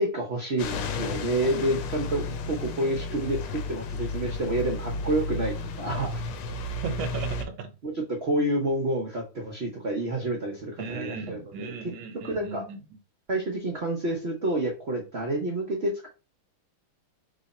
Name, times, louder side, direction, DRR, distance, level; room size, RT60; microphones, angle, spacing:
voice 1, 0.0-6.2 7.8-11.7 12.2-12.6 13.3-16.1, right 1 dB, 85° right, 0.5 m, -29 dB
sound 1, 0.6-7.4, left 3 dB, 80° left, 1.5 m, -33 dB
voice 2, 6.8-7.7 10.8-13.0, right 5 dB, 70° right, 1.3 m, -36 dB
3.4 x 3.3 x 4.1 m
omnidirectional pair, 2.4 m